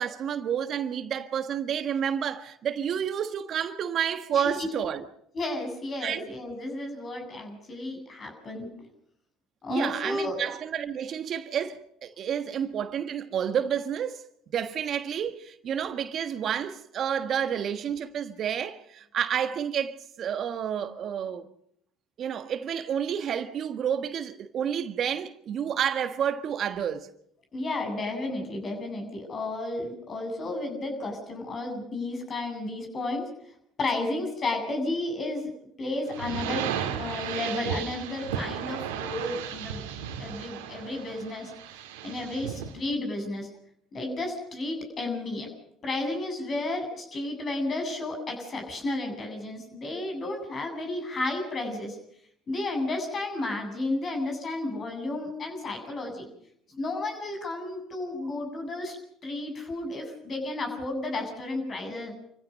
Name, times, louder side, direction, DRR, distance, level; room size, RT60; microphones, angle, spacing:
voice 1, 0.0-5.0 6.0-6.2 9.7-14.2 14.5-21.5 22.2-27.1, right 8 dB, 50° right, 1.5 m, -30 dB
voice 2, 4.3-4.7 5.3-8.9 9.6-10.4 27.5-33.3 33.8-35.5 35.8-39.8 40.2-41.5 42.0-43.5 43.9-45.5 45.8-52.0 52.5-56.3 56.7-59.0 59.2-62.1, left 2 dB, 40° left, 7.9 m, -32 dB
sound 1, 36.1-42.8, right 8 dB, 85° right, 2.3 m, -35 dB
27.5 x 15.5 x 6.5 m
hypercardioid pair, 70°, 0 cm